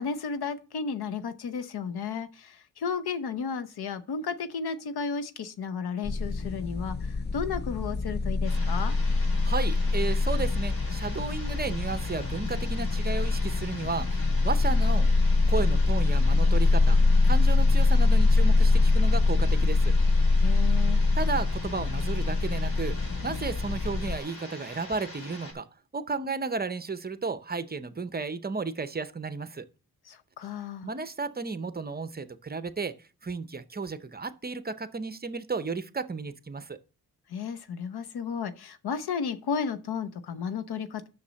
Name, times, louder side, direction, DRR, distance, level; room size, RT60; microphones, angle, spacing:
voice 1, 0.0-8.9 20.4-21.0 30.1-30.9 37.3-41.1, left 6 dB, 85° left, 0.9 m, -33 dB
sound 1, 6.0-24.2, left 3 dB, 30° left, 0.4 m, -24 dB
sound 2, 8.4-25.5, left 1 dB, 60° left, 4.8 m, -44 dB
voice 2, 9.4-15.1 15.5-17.0 17.2-19.9 21.1-25.7 25.9-29.7 30.8-36.8, right 4 dB, 25° right, 0.7 m, -33 dB
7.0 x 6.5 x 6.3 m
cardioid pair, 95°, 38 cm